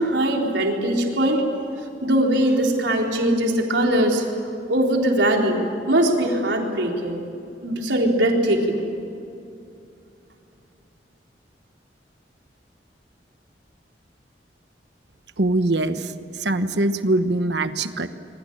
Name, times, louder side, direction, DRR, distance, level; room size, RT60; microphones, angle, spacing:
voice 1, 0.0-1.4 2.0-4.3 4.7-5.6 5.9-7.2 7.6-8.8, right 1 dB, 85° right, 0 dB, 4.1 m, -21 dB
voice 2, 15.4-16.1 16.4-18.1, right 2 dB, 70° right, 10 dB, 1.2 m, -22 dB
26.5 x 23.0 x 8.9 m, 2.6 s
head